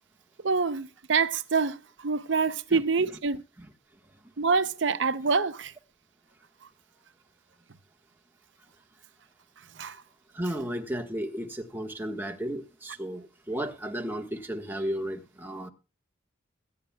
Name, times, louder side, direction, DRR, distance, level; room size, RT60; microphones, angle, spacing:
voice 1, 0.4-3.4 4.4-5.7 9.8-10.0, right 4 dB, 65° right, 0.7 m, -26 dB
voice 2, 10.3-15.7, right 1 dB, 10° right, 1.4 m, -34 dB
22.0 x 10.5 x 2.3 m
head